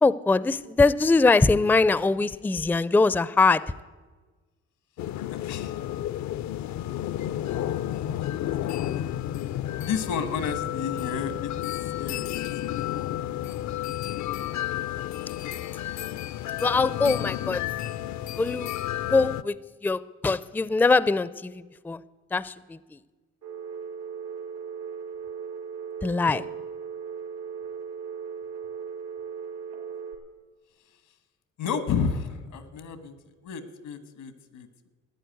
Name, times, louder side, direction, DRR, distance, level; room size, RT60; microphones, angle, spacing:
voice 1, 0.0-3.6 16.6-17.6 18.4-18.7 19.1-19.6 19.8-22.0 22.3-23.0 26.0-26.4, left 3 dB, 5° left, 18 dB, 0.4 m, -22 dB
sound 1, 5.0-19.4, left 12 dB, 65° left, 0.5 m, -31 dB
voice 2, 5.3-5.8 8.2-8.3 9.0-9.1 9.8-11.5 12.0-12.3 12.6-12.8 13.2-13.3 31.6-33.1 33.4-34.9, left 6 dB, 85° left, 12 dB, 1.6 m, -31 dB
Telephone, 23.4-30.1, right 6 dB, 85° right, 3.3 m, -37 dB
14.0 x 10.0 x 9.3 m, 1.3 s
cardioid pair, 90°, 30 cm